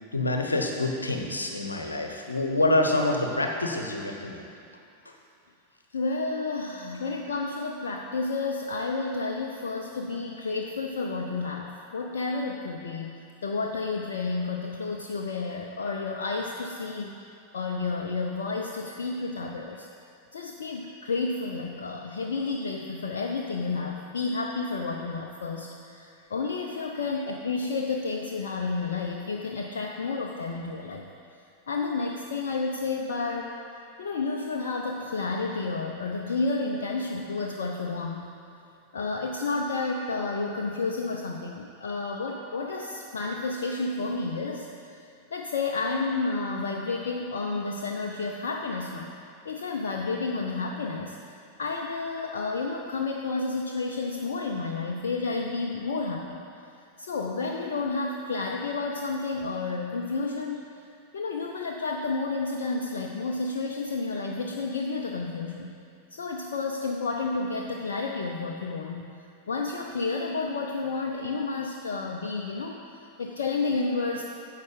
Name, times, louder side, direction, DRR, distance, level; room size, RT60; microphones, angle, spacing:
voice 1, 0.1-4.5, left 2 dB, 80° left, 3 dB, 1.0 m, -26 dB
voice 2, 5.9-13.1 13.4-17.2 17.5-19.9 20.3-31.1 31.7-33.5 34.0-38.3 38.9-49.1 49.4-56.4 57.0-60.6 61.1-65.8 66.1-69.0 69.5-74.2, left 3 dB, 65° left, 1 dB, 0.6 m, -31 dB
10.5 x 7.4 x 5.1 m, 2.6 s
figure-of-eight pair, 90°, 0 cm